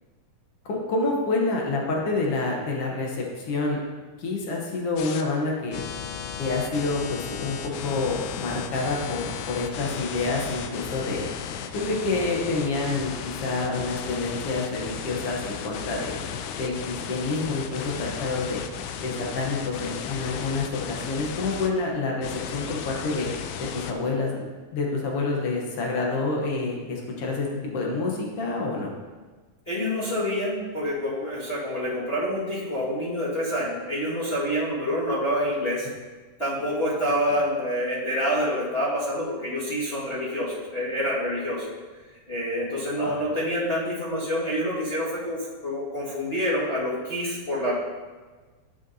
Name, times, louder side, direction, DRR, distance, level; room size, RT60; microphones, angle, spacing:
voice 1, 0.6-3.8 4.2-5.8 6.4-7.6 7.8-11.3 11.7-16.2 16.6-18.6 19.0-23.3 23.7-24.4 24.7-27.5 27.7-28.9 37.3-37.4 43.0-43.1, left 3 dB, 70° left, -1 dB, 1.4 m, -28 dB
sound 1, 5.0-5.2 5.7-21.7 22.2-23.9, left 7 dB, 90° left, 1.7 m, -35 dB
voice 2, 29.7-35.9 36.4-41.7 42.3-47.8, equal, 30° left, -10 dB, 1.2 m, -27 dB
11.5 x 6.6 x 2.8 m, 1.3 s
omnidirectional pair, 4.1 m